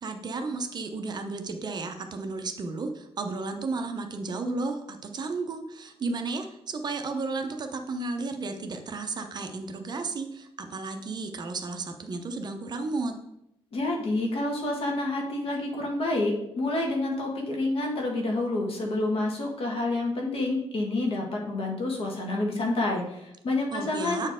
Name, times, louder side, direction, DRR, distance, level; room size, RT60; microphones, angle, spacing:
voice 1, 0.0-13.1 23.7-24.3, right 3 dB, 40° right, 5 dB, 0.7 m, -33 dB
voice 2, 13.7-24.3, left 2 dB, 65° left, 1 dB, 1.5 m, -28 dB
7.9 x 4.4 x 3.6 m, 0.81 s
wide cardioid pair, 135°, 11 cm